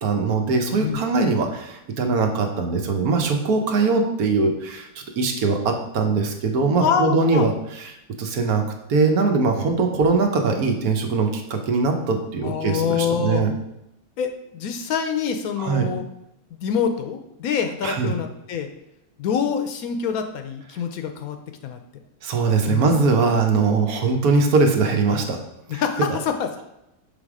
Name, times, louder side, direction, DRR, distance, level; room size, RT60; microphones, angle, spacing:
voice 1, 0.0-4.9 5.2-7.9 8.2-8.6 8.9-13.5 15.6-15.9 17.8-18.1 22.2-25.4 25.7-25.8, right 4 dB, 70° right, 4 dB, 1.3 m, -21 dB
voice 2, 6.8-7.5 12.4-13.5 14.2-16.1 16.5-18.7 19.2-21.4 21.6-21.8 22.7-22.9 25.7-26.5, left 7 dB, 70° left, 6 dB, 1.0 m, -25 dB
6.4 x 3.5 x 4.8 m, 0.85 s
omnidirectional pair, 1.7 m